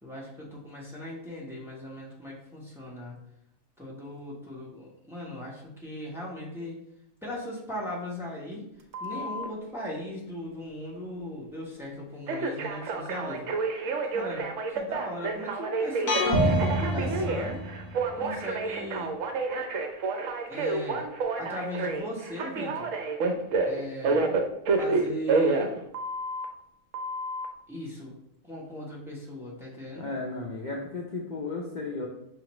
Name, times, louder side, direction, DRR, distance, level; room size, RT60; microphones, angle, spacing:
voice 1, 0.0-3.2 3.8-6.8 7.2-8.6 9.0-13.5 14.0-17.6 18.2-19.1 20.5-21.1 21.4-22.9 23.6-24.2 24.8-25.7 27.7-28.1 28.4-30.1, left 1 dB, ahead, -4 dB, 0.8 m, -38 dB
Telephone, 8.9-9.5 12.3-26.5 26.9-27.5, right 3 dB, 70° right, 0.9 m, -29 dB
sound 1, 16.1-18.1, equal, 40° left, 0.8 m, -26 dB
voice 2, 29.9-32.1, left 3 dB, 70° left, -1 dB, 0.4 m, -34 dB
5.7 x 2.5 x 3.0 m, 0.79 s
omnidirectional pair, 1.4 m